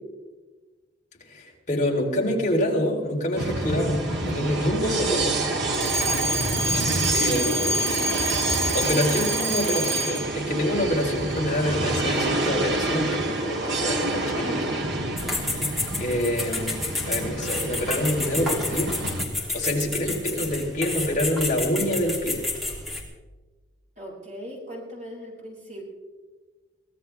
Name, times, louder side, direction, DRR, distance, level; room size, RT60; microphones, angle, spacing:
voice 1, 1.2-5.4 6.7-6.8 7.1-7.9 8.7-14.7 15.3-15.6 16.0-18.9 19.5-22.4, left 1 dB, 40° left, -2 dB, 3.6 m, -26 dB
sound 1, 3.4-19.2, right 2 dB, 65° right, 2.2 m, -28 dB
Alarm, 5.7-10.4, right 1 dB, 80° right, 1.4 m, -27 dB
voice 2, 7.5-8.0 9.3-9.9 14.4-14.8 23.9-25.8, equal, 40° right, -3 dB, 6.6 m, -39 dB
sound 2, 15.2-23.0, left 2 dB, ahead, 2.9 m, -30 dB
23.5 x 17.0 x 3.4 m, 1.3 s
head